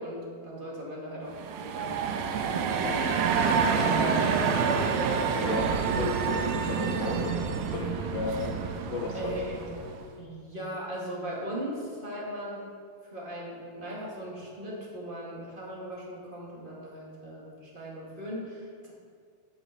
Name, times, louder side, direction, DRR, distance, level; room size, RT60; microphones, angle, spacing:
voice 1, 0.0-3.1 9.1-9.5 10.2-12.7 13.0-18.9, equal, 20° right, -4 dB, 1.3 m, -39 dB
sound 1, 1.3-10.0, right 6 dB, 90° right, 2.6 m, -28 dB
voice 2, 5.3-8.6 8.9-9.3 9.8-9.9, left 4 dB, 90° left, 1 dB, 3.2 m, -34 dB
10.5 x 6.3 x 7.5 m, 2.1 s
omnidirectional pair, 4.2 m